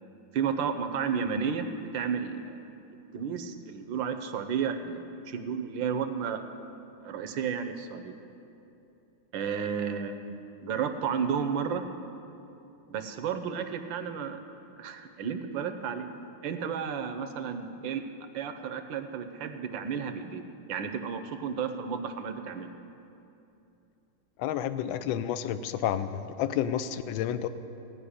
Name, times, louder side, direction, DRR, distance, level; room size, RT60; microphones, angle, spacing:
voice 1, 0.3-2.6 3.1-6.4 7.0-8.2 9.3-10.2 10.6-11.9 12.9-14.4 14.8-16.1 16.4-18.0 18.3-20.4 20.7-22.7, right 7 dB, 70° right, 8 dB, 1.4 m, -32 dB
voice 2, 24.4-27.5, left 10 dB, 75° left, 12 dB, 1.3 m, -30 dB
15.5 x 5.4 x 9.8 m, 2.8 s
omnidirectional pair, 2.2 m